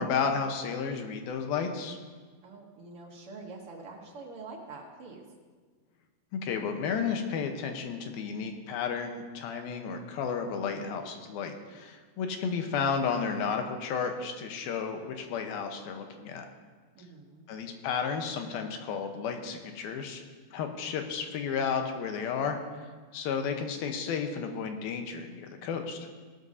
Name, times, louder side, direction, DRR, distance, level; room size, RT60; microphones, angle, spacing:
voice 1, 0.0-2.0 6.3-16.4 17.5-20.2 20.5-22.6 23.1-26.0, left 6 dB, 85° left, 5 dB, 2.8 m, -32 dB
voice 2, 2.4-5.2 17.0-17.5, right 3 dB, 55° right, -1 dB, 1.7 m, -45 dB
18.0 x 12.5 x 2.7 m, 1.5 s
omnidirectional pair, 4.2 m